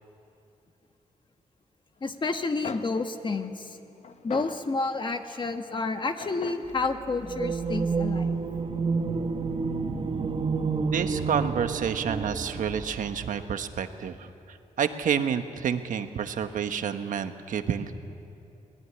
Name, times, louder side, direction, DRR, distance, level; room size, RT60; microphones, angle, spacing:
voice 1, 2.0-3.8 4.2-8.4, left 3 dB, 40° left, 6 dB, 1.5 m, -30 dB
sound 1, 2.6-5.3 6.2-8.1, left 5 dB, 60° left, 1.1 m, -42 dB
sound 2, 7.2-13.2, right 4 dB, 45° right, 1.3 m, -29 dB
voice 2, 10.9-17.9, right 8 dB, 90° right, 8 dB, 1.2 m, -29 dB
24.5 x 19.0 x 9.7 m, 2.7 s
wide cardioid pair, 105°, 13 cm